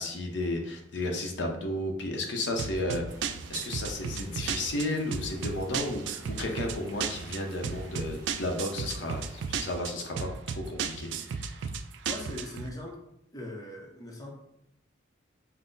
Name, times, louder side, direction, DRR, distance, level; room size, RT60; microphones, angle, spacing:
voice 1, 0.0-11.6, left 1 dB, 65° left, 2 dB, 0.7 m, -33 dB
sound 1, 2.6-12.7, right 6 dB, 65° right, 0.3 m, -35 dB
sound 2, 3.1-9.7, right 1 dB, 20° right, 1.3 m, -51 dB
voice 2, 12.0-13.0 13.3-14.3, left 1 dB, 20° left, 0 dB, 0.7 m, -40 dB
5.6 x 2.1 x 3.9 m, 0.83 s
head